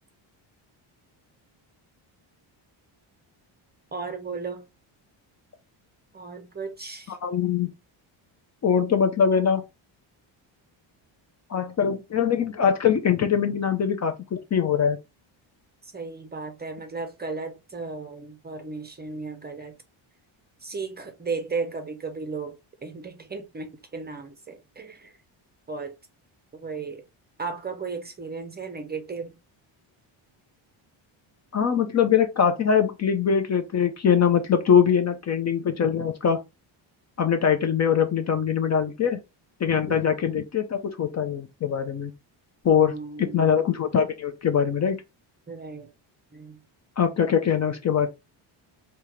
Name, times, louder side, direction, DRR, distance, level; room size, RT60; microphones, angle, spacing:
voice 1, 3.9-4.6 6.1-7.2 15.8-19.7 20.6-25.1 25.7-26.0 26.5-27.0 27.4-29.4 39.9-40.1 42.7-43.6 45.5-45.9 46.3-46.6, right 4 dB, 20° right, 0.5 m, -35 dB
voice 2, 7.1-7.7 8.6-9.6 11.5-15.0 31.5-36.4 37.2-39.2 39.6-42.1 42.6-45.0 47.0-48.1, left 7 dB, 35° left, 0.5 m, -22 dB
3.6 x 2.8 x 3.0 m
cardioid pair, 125°, 49 cm